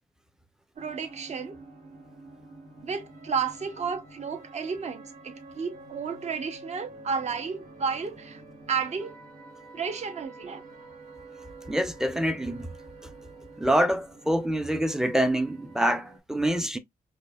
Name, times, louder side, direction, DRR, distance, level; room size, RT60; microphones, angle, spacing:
sound 1, 0.7-16.2, right 2 dB, 85° right, 1.2 m, -48 dB
voice 1, 0.8-1.6 2.8-8.4 8.7-9.2 9.7-10.6, right 6 dB, 45° right, 0.7 m, -32 dB
voice 2, 11.7-12.7 13.6-16.8, right 1 dB, 5° right, 0.5 m, -26 dB
5.1 x 2.1 x 2.2 m
cardioid pair, 110°, 16 cm